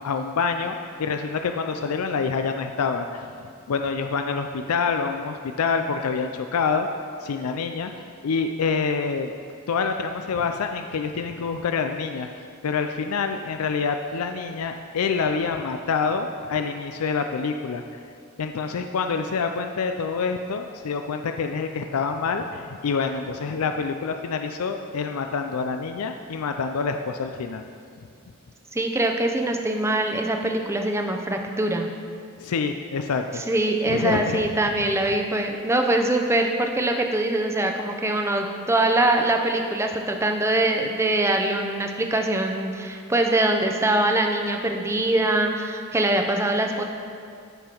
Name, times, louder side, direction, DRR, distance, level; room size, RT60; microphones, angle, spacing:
voice 1, 0.0-3.3 3.7-6.9 7.2-9.3 9.7-18.0 18.4-27.6 32.4-33.4 33.8-34.4, left 5 dB, 80° left, 6 dB, 0.4 m, -27 dB
voice 2, 28.7-31.9 33.5-46.8, right 1 dB, 10° right, 3 dB, 0.6 m, -23 dB
13.5 x 5.6 x 4.5 m, 2.3 s
head